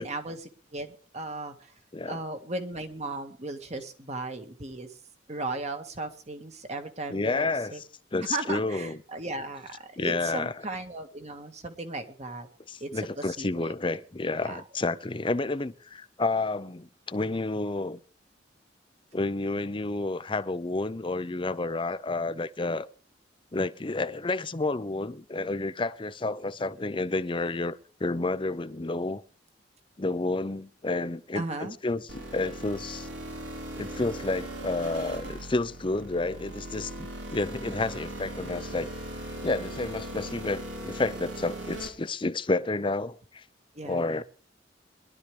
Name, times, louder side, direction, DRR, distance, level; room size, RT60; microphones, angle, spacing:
voice 1, 0.0-1.6 2.1-4.9 5.3-7.5 7.7-7.8 8.2-12.5 12.8-12.9 13.2-13.7 14.4-14.6 31.3-31.8 43.8-44.2, right 2 dB, 35° right, 1.7 m, -36 dB
voice 2, 7.1-7.8 8.1-9.0 10.0-10.5 12.7-18.0 19.1-22.9 23.5-29.2 30.0-33.1 33.8-38.9 39.4-43.4 43.8-44.2, left 2 dB, 25° left, 0.6 m, -30 dB
sound 1, 32.1-41.9, right 1 dB, 90° right, 4.2 m, -39 dB
22.0 x 12.0 x 3.4 m
head